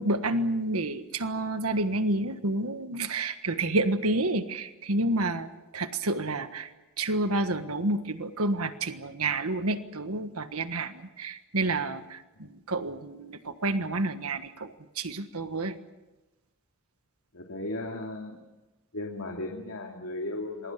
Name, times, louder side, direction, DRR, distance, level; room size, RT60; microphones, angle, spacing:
voice 1, 0.0-5.5 5.7-6.7 7.0-15.8, right 2 dB, 85° right, 10 dB, 1.5 m, -29 dB
voice 2, 17.3-18.4 18.9-20.7, left 2 dB, 80° left, 1 dB, 2.6 m, -36 dB
27.0 x 21.5 x 6.8 m, 1.1 s
head